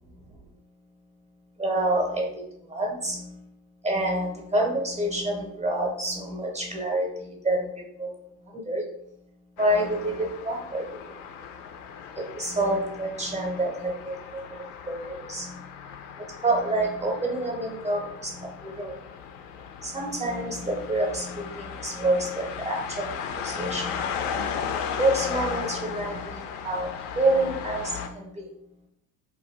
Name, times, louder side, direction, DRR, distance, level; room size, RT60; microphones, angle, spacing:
voice 1, 1.6-3.5 3.8-8.1 8.4-8.8 9.6-11.2 12.2-15.7 16.2-19.0 19.8-24.1 25.0-28.5, right 1 dB, 15° right, 0 dB, 0.6 m, -28 dB
sound 1, 9.6-28.1, left 7 dB, 55° left, 0.5 m, -36 dB
2.6 x 2.2 x 3.4 m, 0.75 s
hypercardioid pair, 80°, 47 cm